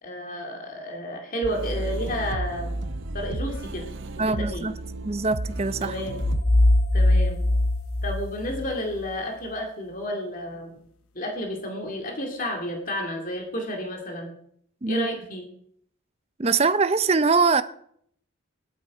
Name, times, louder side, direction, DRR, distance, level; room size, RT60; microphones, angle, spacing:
voice 1, 0.0-2.8 3.1-3.8 4.2-4.7 5.8-6.2 6.9-7.4 8.0-10.7 11.1-14.3 14.9-15.4, equal, 40° left, 2.3 m, -31 dB
sound 1, 1.4-6.4, right 2 dB, 60° right, 0.8 m, -32 dB
voice 2, 4.2-4.7 5.0-5.9 14.8-15.1 16.4-17.6, right 4 dB, 30° right, 0.5 m, -22 dB
sound 2, 6.2-9.1, left 1 dB, 80° left, 0.9 m, -21 dB
19.5 x 12.5 x 4.8 m
head